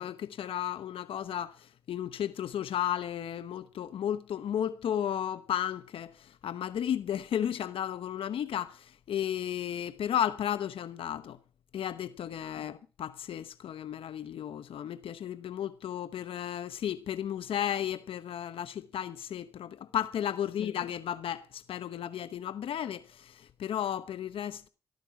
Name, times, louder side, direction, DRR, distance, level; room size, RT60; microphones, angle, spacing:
voice 1, 0.0-11.4 11.7-24.7, left 10 dB, 80° left, 0.9 m, -34 dB
14.5 x 12.5 x 5.9 m
supercardioid pair, 50°, 9 cm